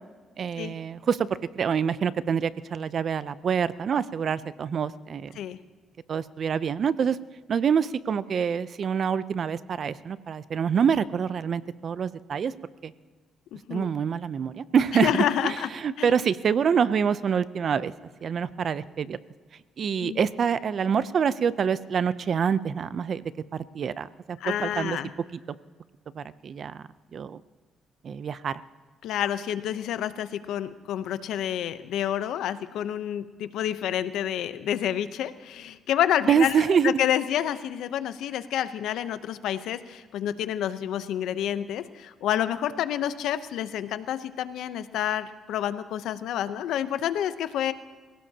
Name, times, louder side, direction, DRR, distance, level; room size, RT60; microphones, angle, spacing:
voice 1, 0.4-1.3 1.6-5.3 6.1-7.2 7.5-12.5 12.8-12.9 13.7-15.2 15.8-17.9 18.2-19.2 19.8-23.2 23.7-25.0 26.2-26.8 27.1-27.4 28.0-28.5 36.3-37.0, right 7 dB, 55° right, 16 dB, 0.5 m, -26 dB
voice 2, 13.5-13.9 14.9-15.7 16.0-16.1 20.0-20.3 24.4-25.1 29.0-47.7, left 10 dB, 80° left, 12 dB, 0.8 m, -29 dB
24.0 x 17.0 x 2.9 m, 1.5 s
cardioid pair, 95°, 0 cm